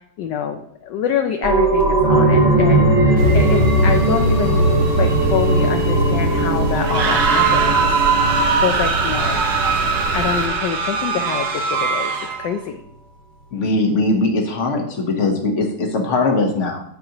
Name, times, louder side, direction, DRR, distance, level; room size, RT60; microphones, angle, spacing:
voice 1, 0.2-7.9 8.2-9.5 10.1-12.1 12.4-12.8, left 8 dB, 70° left, 6 dB, 1.2 m, -25 dB
sound 1, 1.4-10.8 11.1-11.2, right 1 dB, 40° right, 1.5 m, -18 dB
sound 2, 3.2-10.5, right 5 dB, 85° right, 0.6 m, -29 dB
sound 3, 6.8-12.5, right 4 dB, 60° right, 1.4 m, -20 dB
voice 2, 13.5-16.8, left 2 dB, 45° left, 3 dB, 1.3 m, -20 dB
9.2 x 7.3 x 2.9 m, 0.70 s
omnidirectional pair, 2.1 m